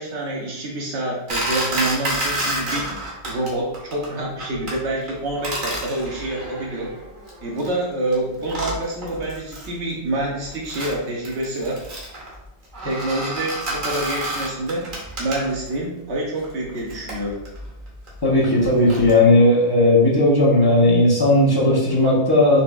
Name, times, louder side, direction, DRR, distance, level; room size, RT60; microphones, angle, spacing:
voice 1, 0.0-3.0 3.2-6.9 7.4-11.8 12.8-14.9 15.2-17.4, right 1 dB, 75° right, -2 dB, 1.1 m, -27 dB
sound 1, 1.3-3.5 3.7-4.1 4.4-4.8 5.1-7.7 8.1-8.2 8.4-9.8 10.1-15.8 16.4-19.1, right 1 dB, 50° right, 1.1 m, -29 dB
voice 2, 18.2-22.6, left 1 dB, 25° left, -6 dB, 0.8 m, -16 dB
4.1 x 3.2 x 2.4 m, 0.84 s
omnidirectional pair, 1.2 m